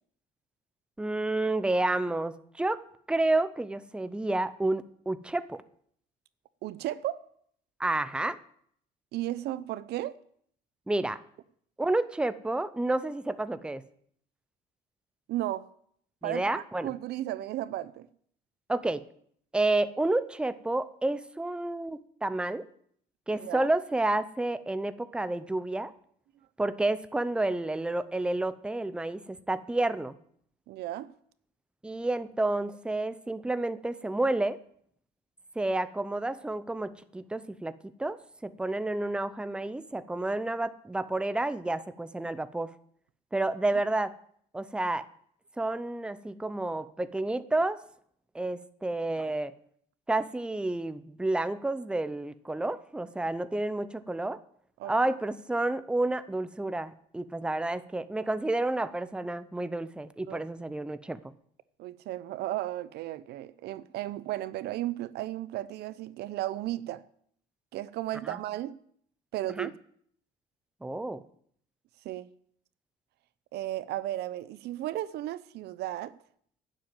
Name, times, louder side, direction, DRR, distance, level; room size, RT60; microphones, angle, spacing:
voice 1, 1.0-5.6 7.8-8.4 10.9-11.2 11.8-13.8 16.2-16.9 18.7-19.1 19.5-22.6 23.3-25.9 26.6-30.2 31.8-34.6 35.6-42.7 43.3-44.1 44.5-45.1 45.6-47.8 48.3-49.5 50.1-54.4 54.8-61.2 68.2-68.4 69.6-69.7 70.8-71.2, right 2 dB, 5° right, 0.7 m, -30 dB
voice 2, 6.6-7.2 9.1-10.1 15.3-15.7 16.2-18.1 23.3-23.7 30.7-31.1 54.8-55.2 60.3-60.4 61.8-67.0 67.7-68.7 69.3-69.7 72.0-72.3 73.5-76.1, right 14 dB, 75° right, 0.6 m, -34 dB
10.5 x 7.7 x 9.0 m
cardioid pair, 110°, 17 cm